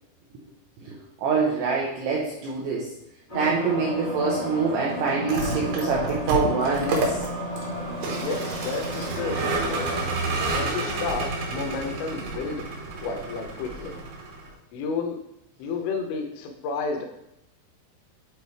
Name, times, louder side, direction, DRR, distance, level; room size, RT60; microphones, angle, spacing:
voice 1, 0.8-2.9 3.3-7.3, right 4 dB, 85° right, -4 dB, 2.4 m, -25 dB
sound 1, 3.3-10.2, equal, 40° left, 0.9 m, -33 dB
Vehicle, 5.1-14.5, right 2 dB, 70° right, 2.5 m, -30 dB
voice 2, 8.1-9.9 10.5-12.6 13.0-14.0 14.7-15.2 15.6-17.1, left 4 dB, 80° left, 3 dB, 3.1 m, -31 dB
8.2 x 4.0 x 3.2 m, 0.82 s
omnidirectional pair, 5.8 m